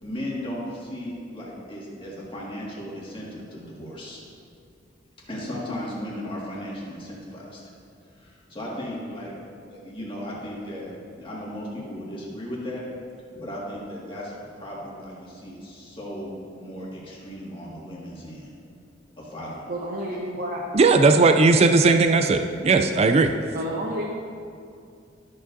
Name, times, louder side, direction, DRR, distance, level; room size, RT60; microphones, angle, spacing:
voice 1, 0.0-4.2 5.3-7.6 8.1-9.3 9.7-12.8 13.4-18.5 19.2-19.7, equal, 25° left, -6 dB, 1.8 m, -36 dB
voice 2, 19.7-20.7 23.5-24.0, equal, 50° right, -4 dB, 0.8 m, -30 dB
voice 3, 20.7-23.3, right 3 dB, 30° right, 6 dB, 0.3 m, -17 dB
12.5 x 6.8 x 2.6 m, 2.4 s
head